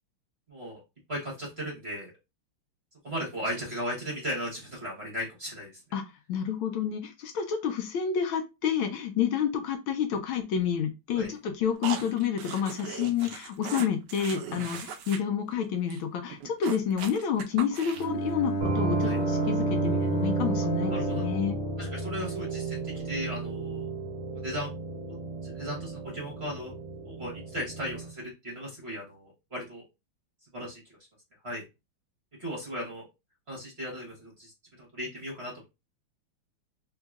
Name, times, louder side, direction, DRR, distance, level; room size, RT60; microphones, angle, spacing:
voice 1, 0.5-0.8 1.1-2.1 3.0-5.8 11.1-11.3 19.0-19.2 20.9-21.3 21.8-23.9 24.4-24.8 25.4-26.7 27.0-29.8 30.5-30.8 31.4-31.6 32.4-33.0 33.5-34.5 34.8-35.6, equal, 35° right, -3 dB, 1.1 m, -36 dB
voice 2, 5.9-21.6, left 8 dB, 75° left, 5 dB, 1.3 m, -29 dB
sound 1, 11.8-15.2 15.5-15.6 15.9-16.0 16.3-18.2, right 7 dB, 85° right, 0.9 m, -38 dB
Bowed string instrument, 17.9-22.8, right 2 dB, 50° left, 1.0 m, -31 dB
sound 2, 18.6-28.1, right 3 dB, 15° right, 0.8 m, -33 dB
3.5 x 2.9 x 2.3 m, 0.25 s
omnidirectional pair, 2.4 m